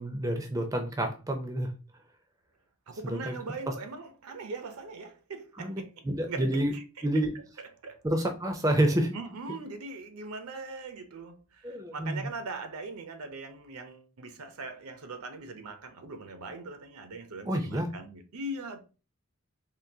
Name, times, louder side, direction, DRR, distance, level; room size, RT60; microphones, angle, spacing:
voice 1, 0.0-1.7 3.0-3.3 5.6-6.7 7.0-7.3 8.0-9.2 11.6-12.3 17.5-17.9, right 1 dB, 15° right, 0.4 m, -29 dB
voice 2, 2.9-7.1 7.6-8.0 9.1-18.8, right 3 dB, 80° right, 0.6 m, -41 dB
3.7 x 2.6 x 2.7 m
head